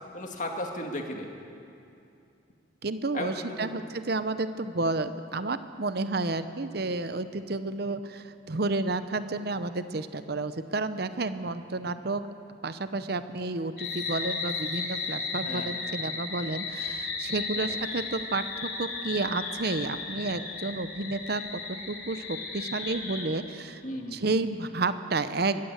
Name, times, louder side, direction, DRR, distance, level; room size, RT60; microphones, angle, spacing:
voice 1, 0.1-1.3 3.1-3.7 15.5-15.7 17.6-17.8 23.8-24.2, left 1 dB, 40° left, 2 dB, 2.1 m, -35 dB
voice 2, 2.8-12.2 12.6-21.4 21.7-23.8 24.1-25.6, right 3 dB, 55° right, 11 dB, 0.8 m, -31 dB
sound 1, 13.8-23.3, left 4 dB, 55° left, 3.1 m, -35 dB
22.0 x 15.5 x 8.2 m, 2.6 s
head